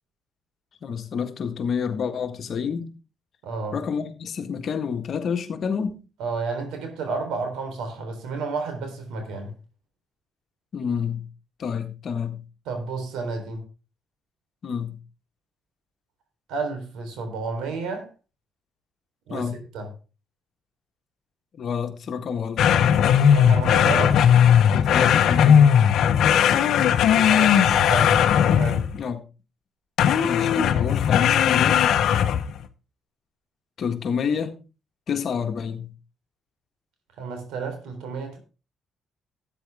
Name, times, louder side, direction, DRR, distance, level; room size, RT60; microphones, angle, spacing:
voice 1, 0.8-2.9 3.7-6.0 10.7-11.3 11.6-12.4 14.6-15.0 19.3-19.6 21.5-22.7 24.7-25.8 28.9-29.2 30.2-31.9 33.8-34.5 35.1-35.9, left 6 dB, 60° left, 1.7 m, -28 dB
voice 2, 3.4-3.8 6.2-9.5 12.7-13.6 16.5-18.1 19.3-19.9 23.3-24.2 27.0-28.3 28.6-28.9 37.2-38.4, right 4 dB, 90° right, 3.8 m, -31 dB
sound 1, 22.6-29.0 30.0-32.6, left 8 dB, 75° left, 1.0 m, -18 dB
13.0 x 9.3 x 3.6 m
cardioid pair, 90°, 0 cm